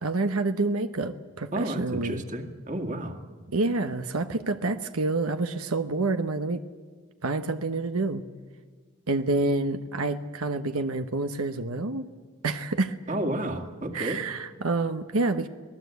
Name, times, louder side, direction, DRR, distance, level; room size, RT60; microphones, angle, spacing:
voice 1, 0.0-2.2 3.5-6.6 7.2-8.2 9.1-12.1 12.4-12.9 13.9-15.5, right 3 dB, 90° right, 8 dB, 1.1 m, -28 dB
voice 2, 1.5-3.2 13.1-14.2, right 1 dB, 35° right, 5 dB, 2.0 m, -31 dB
26.5 x 19.0 x 8.3 m, 1.5 s
head